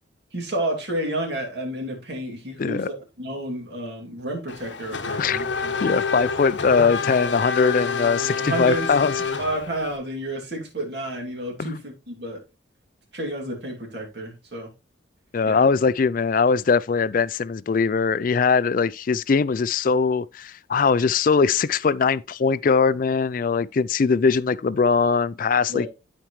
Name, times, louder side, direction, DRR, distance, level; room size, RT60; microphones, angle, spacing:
voice 1, 0.3-5.7 8.4-8.9 9.4-12.4 13.1-14.7 15.4-15.7 25.7-25.9, right 1 dB, 55° right, 2.6 m, -30 dB
Race car auto racing / Accelerating revving vroom, 4.5-10.0, left 5 dB, 65° left, 0.9 m, -28 dB
voice 2, 5.8-9.1 11.6-11.8 15.3-25.9, left 5 dB, 45° left, 0.3 m, -21 dB
13.0 x 4.5 x 3.1 m
head